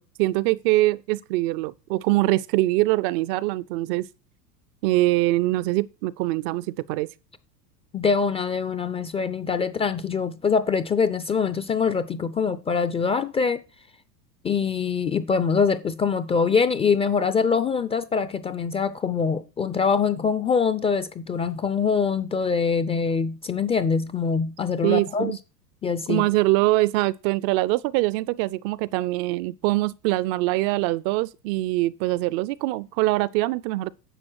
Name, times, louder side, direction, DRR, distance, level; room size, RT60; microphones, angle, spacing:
voice 1, 0.0-4.1 4.8-7.1 24.8-25.4 26.1-33.9, right 19 dB, 40° right, 0.5 m, -23 dB
voice 2, 7.9-13.6 14.4-25.3 25.8-26.3, left 5 dB, 15° left, 0.4 m, -24 dB
11.0 x 7.3 x 4.6 m
hypercardioid pair, 95°, 49 cm